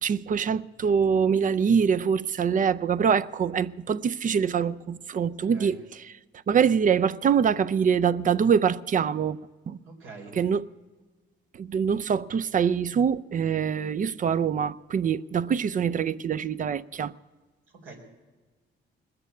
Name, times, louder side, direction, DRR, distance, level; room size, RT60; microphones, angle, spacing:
voice 1, 0.0-5.8 6.5-9.4 9.7-9.8 10.4-10.6 11.5-17.1, right 7 dB, 40° right, 0.5 m, -24 dB
voice 2, 9.8-10.4 17.7-18.0, right 3 dB, 85° right, 4.0 m, -45 dB
20.0 x 6.8 x 8.3 m
cardioid pair, 90°, 20 cm